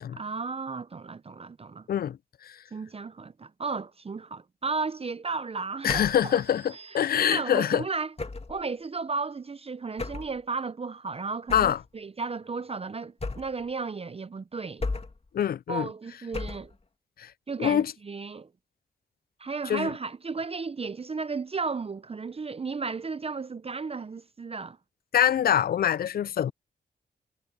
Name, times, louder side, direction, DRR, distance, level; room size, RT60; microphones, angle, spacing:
voice 1, 0.1-1.9 2.7-6.4 6.9-8.1 8.5-14.9 15.7-16.7 17.5-18.5 19.4-24.8, right 4 dB, 35° right, 0.6 m, -34 dB
voice 2, 5.8-7.8 11.5-11.8 15.3-15.9 17.2-17.3 17.6-17.9 19.7-19.9 25.1-26.5, left 9 dB, 60° left, 0.4 m, -24 dB
sound 1, 5.9-6.3 8.2-8.6 10.0-10.4 11.5-11.9 13.2-13.7 14.8-15.3 16.3-16.8, left 3 dB, 35° left, 2.8 m, -34 dB
sound 2, 6.0-7.7, right 6 dB, 60° right, 4.5 m, -53 dB
cardioid pair, 60°, 18 cm